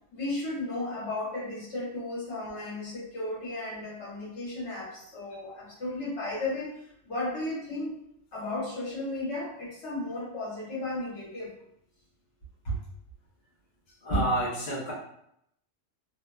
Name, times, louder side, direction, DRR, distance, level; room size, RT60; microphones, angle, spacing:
voice 1, 0.1-8.0 8.3-11.5 12.6-12.8, left 2 dB, 60° left, -7 dB, 1.2 m, -34 dB
voice 2, 14.0-14.9, right 1 dB, 40° left, -7 dB, 0.7 m, -27 dB
2.7 x 2.1 x 2.2 m, 0.74 s
omnidirectional pair, 1.3 m